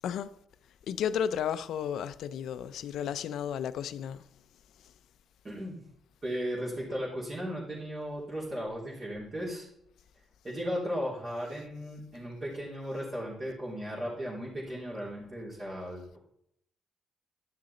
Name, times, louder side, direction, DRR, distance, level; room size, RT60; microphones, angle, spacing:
voice 1, 0.9-4.3, left 9 dB, 75° left, 0.5 m, -33 dB
voice 2, 5.4-5.8 6.2-9.7 10.4-16.2, equal, 35° right, 3.3 m, -36 dB
11.0 x 6.4 x 4.2 m
cardioid pair, 90°, 0 cm